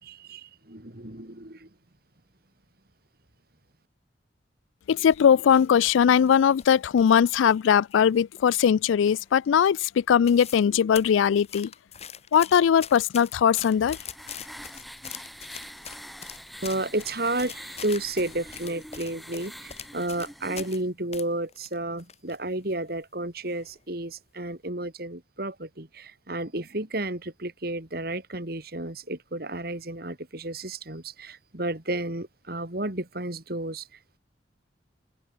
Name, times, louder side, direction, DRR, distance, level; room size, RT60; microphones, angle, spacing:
voice 1, 0.0-1.7 16.6-33.9, right 2 dB, 55° right, 2.8 m, -32 dB
voice 2, 4.9-11.7 12.3-14.0, left 8 dB, 90° left, 0.3 m, -20 dB
sound 1, 4.9-7.6 7.9-8.7 9.0-9.4 9.7-9.8 10.0-10.7 10.9-20.8 21.1-22.4 22.7-22.8 23.4-23.8 24.2-24.4, left 8 dB, 35° left, 4.4 m, -43 dB
sound 2, 13.3-20.8, equal, ahead, 3.3 m, -44 dB
open air
head